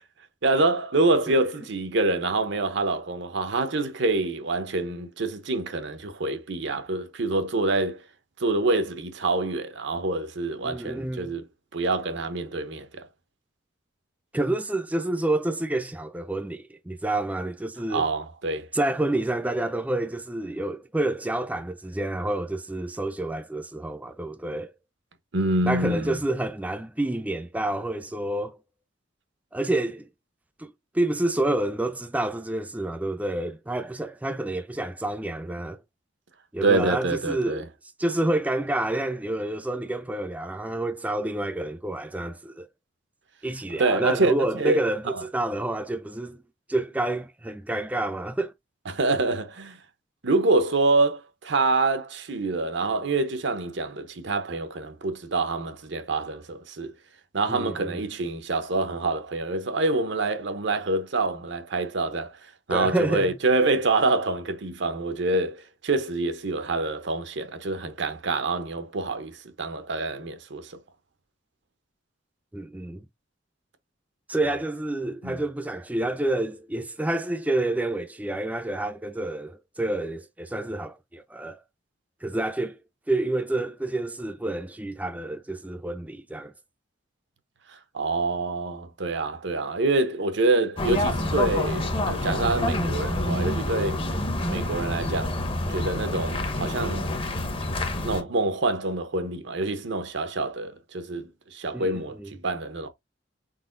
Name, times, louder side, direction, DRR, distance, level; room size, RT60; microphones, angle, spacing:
voice 1, 0.4-8.0 8.4-11.5 11.7-13.1 17.9-18.7 25.3-26.2 36.6-37.6 43.7-44.8 45.1-45.2 48.9-49.8 50.2-56.9 57.3-62.4 62.7-70.8 75.2-75.4 87.7-94.0 94.5-95.4 95.7-97.1 98.0-102.9, right 2 dB, 70° right, 0.8 m, -26 dB
voice 2, 10.6-11.4 14.3-18.1 18.7-24.7 25.6-28.6 29.5-30.1 30.6-35.8 36.5-37.7 38.0-42.7 43.4-46.4 46.7-48.5 57.5-58.0 62.7-63.3 72.5-73.1 74.3-81.6 82.2-82.8 83.1-86.5 101.7-102.3, right 1 dB, 10° right, 0.4 m, -28 dB
sound 1, 90.8-98.2, left 1 dB, 30° left, 0.7 m, -27 dB
4.4 x 4.1 x 2.5 m
head